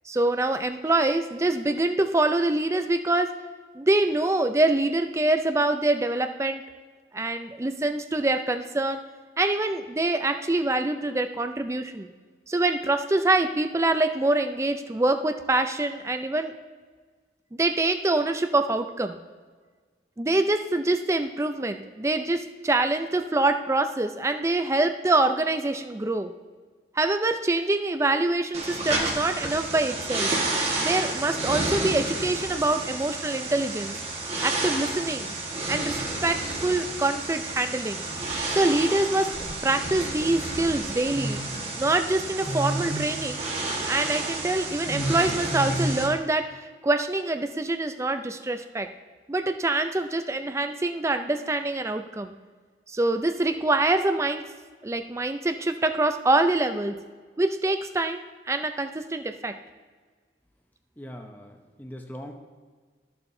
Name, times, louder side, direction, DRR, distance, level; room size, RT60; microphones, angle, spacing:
voice 1, 0.1-3.3 3.7-6.6 7.1-9.0 9.4-12.1 12.5-16.5 17.6-19.2 20.2-26.3 27.0-30.3 30.8-33.9 34.4-35.3 35.7-38.1 38.5-39.3 39.6-41.4 41.8-43.4 43.9-48.9 49.3-52.4 52.9-54.5 54.8-57.0 57.4-58.2 58.5-59.6, right 2 dB, 15° right, 8 dB, 0.4 m, -25 dB
sound 1, 28.5-46.1, right 2 dB, 35° right, 1.4 m, -30 dB
voice 2, 61.0-62.4, equal, 10° left, 3 dB, 0.8 m, -41 dB
13.5 x 6.9 x 2.7 m, 1.5 s
head